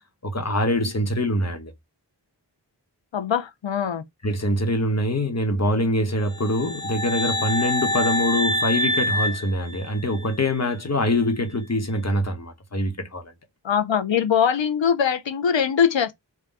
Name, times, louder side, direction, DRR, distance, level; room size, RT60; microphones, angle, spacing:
voice 1, 0.2-1.7 4.2-13.2, left 1 dB, 35° left, 1.0 m, -24 dB
voice 2, 3.1-4.0 13.6-16.1, left 7 dB, 90° left, 0.6 m, -22 dB
sound 1, 6.3-10.3, left 1 dB, 10° left, 0.4 m, -26 dB
3.7 x 2.2 x 4.0 m
wide cardioid pair, 45°, 44 cm